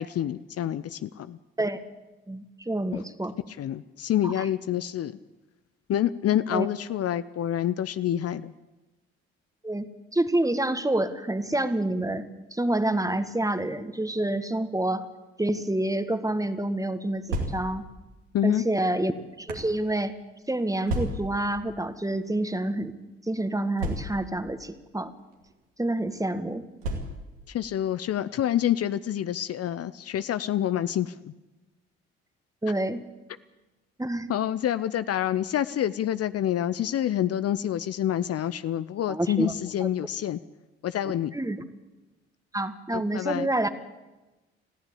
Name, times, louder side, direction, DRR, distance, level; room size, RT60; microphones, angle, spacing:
voice 1, 0.0-1.4 2.9-3.0 3.6-5.1 5.9-8.5 18.3-18.6 27.5-31.3 34.3-40.4 40.8-41.3 42.9-43.5, left 11 dB, 50° left, 14 dB, 0.7 m, -27 dB
voice 2, 2.3-3.4 4.2-4.5 6.5-6.7 9.6-12.3 12.5-15.1 15.4-17.9 18.4-19.1 19.4-20.1 20.5-22.9 23.3-25.1 25.8-26.7 32.6-33.0 34.0-34.3 39.1-39.5 39.8-39.9 41.3-41.6 42.5-43.7, right 1 dB, 10° right, 11 dB, 1.8 m, -28 dB
sound 1, 17.1-17.9 18.7-19.7 20.9-21.5 22.3-22.5 22.8-22.9 23.8-24.4 25.3-25.5 26.8-27.4, right 1 dB, 80° right, 2.7 m, -32 dB
20.5 x 15.0 x 8.5 m, 1.1 s
hypercardioid pair, 45°, 31 cm